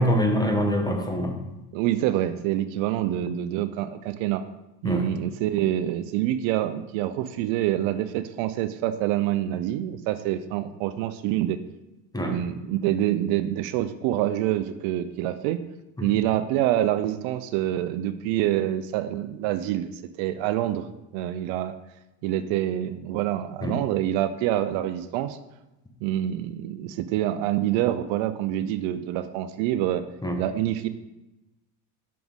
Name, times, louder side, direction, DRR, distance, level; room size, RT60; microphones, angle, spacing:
voice 1, 0.0-1.4 4.8-5.1 12.1-12.4 16.0-16.1 23.6-23.7 30.2-30.4, equal, 10° left, 3 dB, 1.0 m, -24 dB
voice 2, 1.7-4.4 4.8-11.6 12.3-15.6 16.0-19.9 20.2-20.9 21.1-21.7 22.2-25.4 26.0-30.0 30.4-30.9, right 12 dB, 70° right, 12 dB, 0.6 m, -26 dB
6.0 x 6.0 x 3.6 m, 0.97 s
supercardioid pair, 100°, 48 cm